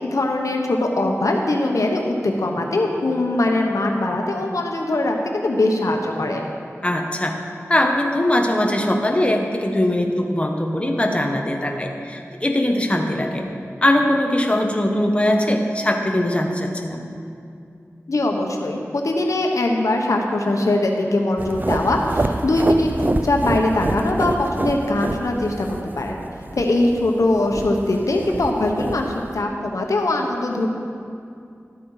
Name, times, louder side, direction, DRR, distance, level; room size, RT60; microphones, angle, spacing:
voice 1, 0.0-6.4 18.1-26.2 26.5-30.7, left 2 dB, 85° left, 2 dB, 1.1 m, -21 dB
voice 2, 6.8-7.4 7.7-13.4 13.8-17.0, left 1 dB, 20° left, 2 dB, 1.1 m, -21 dB
sound 1, 21.4-29.4, right 2 dB, 35° right, 0.5 m, -27 dB
13.0 x 8.6 x 4.8 m, 2.4 s
wide cardioid pair, 70°, 5 cm